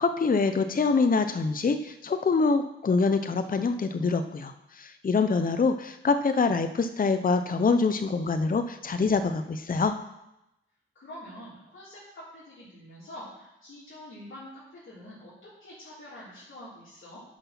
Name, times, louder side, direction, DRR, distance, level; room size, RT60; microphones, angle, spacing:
voice 1, 0.0-9.9, left 4 dB, 40° left, 9 dB, 0.6 m, -25 dB
voice 2, 10.9-17.2, left 1 dB, 70° left, -9 dB, 3.1 m, -46 dB
9.7 x 5.6 x 5.8 m, 0.90 s
cardioid pair, 60°, 21 cm